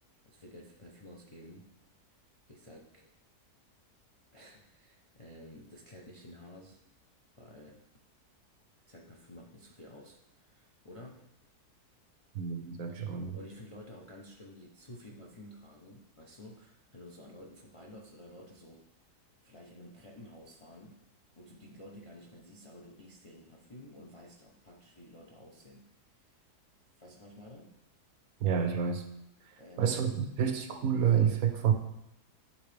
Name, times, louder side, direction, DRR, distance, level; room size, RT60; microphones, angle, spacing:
voice 1, 0.2-1.7 2.5-3.1 4.3-6.8 7.4-7.8 8.9-11.3 12.9-18.8 19.4-21.0 21.4-26.4 27.0-27.8 29.6-29.9, left 1 dB, 40° left, -1 dB, 0.5 m, -52 dB
voice 2, 12.3-13.4 28.4-29.0 29.4-31.7, right 8 dB, 70° right, 7 dB, 1.1 m, -29 dB
9.8 x 3.7 x 3.3 m, 0.85 s
omnidirectional pair, 1.7 m